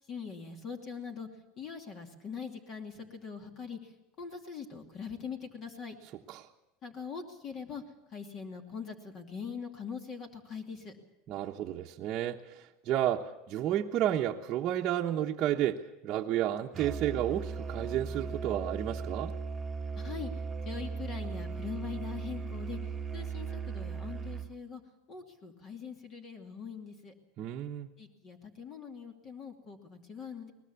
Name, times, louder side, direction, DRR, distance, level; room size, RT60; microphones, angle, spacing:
voice 1, 0.1-1.3 1.6-6.0 6.8-7.8 8.1-10.9 20.0-22.8 23.1-24.8 25.1-27.1 28.0-30.5, left 6 dB, 35° left, 4 dB, 2.6 m, -42 dB
voice 2, 11.3-19.3 27.4-27.9, right 11 dB, 40° right, -2 dB, 1.1 m, -31 dB
Musical instrument, 16.7-24.5, right 5 dB, 15° right, 1.5 m, -37 dB
22.0 x 20.0 x 7.1 m, 0.94 s
supercardioid pair, 140°, 0 cm